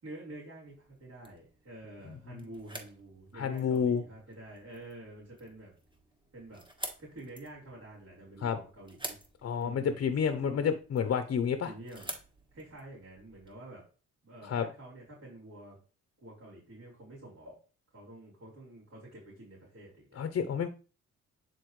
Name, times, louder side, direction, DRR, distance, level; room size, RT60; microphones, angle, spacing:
voice 1, 0.0-5.7 6.3-6.6 7.0-9.2 9.6-10.1 10.4-10.7 11.6-12.1 12.5-13.8 14.2-15.8 16.2-17.6 17.9-20.2, right 1 dB, 55° right, -9 dB, 4.1 m, -48 dB
sound 1, 0.7-13.5, right 1 dB, 15° right, 1.5 m, -49 dB
voice 2, 3.4-4.0 8.4-8.6 9.4-11.7 14.4-14.7 20.2-20.7, left 7 dB, 50° left, 9 dB, 0.8 m, -29 dB
9.8 x 4.2 x 3.2 m, 0.35 s
cardioid pair, 90°, 30 cm